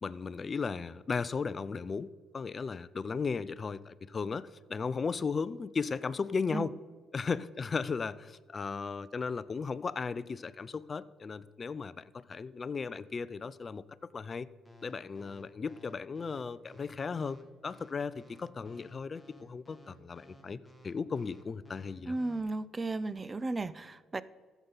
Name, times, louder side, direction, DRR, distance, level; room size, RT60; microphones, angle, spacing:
voice 1, 0.0-6.7 7.1-14.5 14.8-20.6 20.8-22.1, left 5 dB, 40° left, 17 dB, 0.4 m, -36 dB
sound 1, 14.7-22.4, left 1 dB, ahead, 2.1 m, -56 dB
voice 2, 22.1-24.2, right 2 dB, 25° right, 18 dB, 0.5 m, -34 dB
13.0 x 8.2 x 4.0 m, 1.5 s
supercardioid pair, 70°, 0 cm